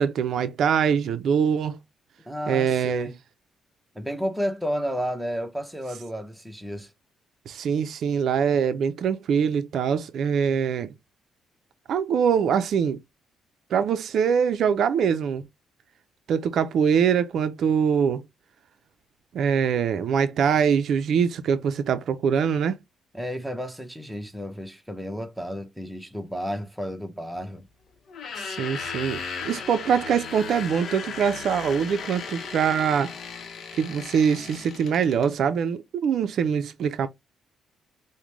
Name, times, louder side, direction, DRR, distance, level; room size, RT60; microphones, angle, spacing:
voice 1, 0.0-1.8 2.5-3.1 7.5-10.9 11.9-13.0 13.7-15.4 16.3-18.2 19.3-22.8 28.4-33.1 33.8-37.1, right 7 dB, 65° right, 0.4 m, -23 dB
voice 2, 2.2-3.1 3.9-6.9 23.1-27.7, equal, 5° right, 0.8 m, -32 dB
sound 1, 28.1-35.3, left 6 dB, 60° left, 0.8 m, -36 dB
5.0 x 2.1 x 3.0 m
cardioid pair, 90°, 0 cm